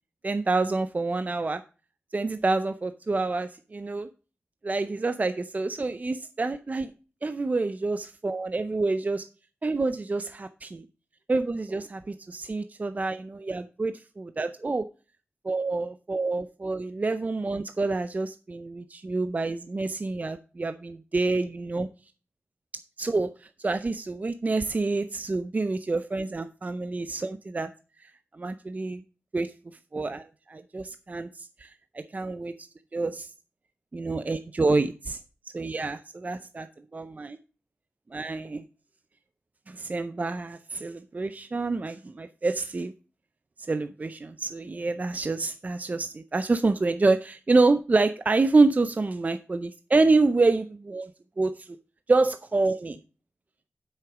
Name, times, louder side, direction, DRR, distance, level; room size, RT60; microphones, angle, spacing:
voice 1, 0.2-1.6 2.1-4.1 4.6-6.9 7.2-9.2 9.6-10.9 11.3-14.9 15.4-21.9 23.0-27.7 28.0-29.0 29.3-29.5 29.9-33.3 33.9-35.2 35.5-36.7 36.9-37.4 38.1-38.6 39.7-42.9 43.7-51.7 52.1-53.0, right 3 dB, 35° right, 10 dB, 0.5 m, -27 dB
7.7 x 6.4 x 4.9 m, 0.35 s
wide cardioid pair, 85°, 4 cm